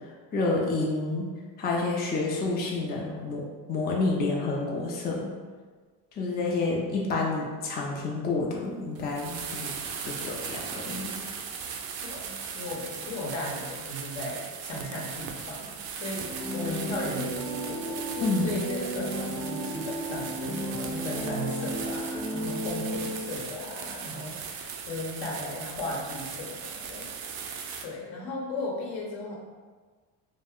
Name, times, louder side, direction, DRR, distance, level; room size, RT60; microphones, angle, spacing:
voice 1, 0.3-1.3 1.6-5.3 6.2-9.7 10.1-11.2 18.2-18.5, left 3 dB, 20° left, -2 dB, 0.4 m, -29 dB
sound 1, 9.0-27.8, right 6 dB, 50° right, 0.5 m, -38 dB
voice 2, 12.0-27.1 27.8-29.4, left 2 dB, 65° left, -2 dB, 0.9 m, -36 dB
sound 2, 16.2-23.5, equal, 40° left, 1.0 m, -34 dB
2.3 x 2.1 x 3.5 m, 1.5 s
supercardioid pair, 80°, 49 cm